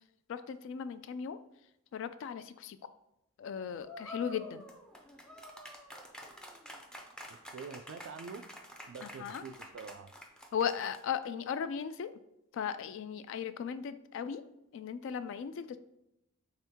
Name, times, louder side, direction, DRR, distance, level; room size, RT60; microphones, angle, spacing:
voice 1, 0.3-1.4 1.9-2.8 3.4-4.6 9.0-9.4 10.5-12.2 12.5-14.4 14.7-15.8, left 7 dB, 65° left, 12 dB, 0.3 m, -37 dB
sound 1, 3.8-11.2, left 1 dB, 5° left, 0.5 m, -48 dB
voice 2, 7.3-8.4 8.9-10.1, right 5 dB, 65° right, 11 dB, 0.3 m, -46 dB
4.4 x 3.4 x 3.5 m, 0.86 s
head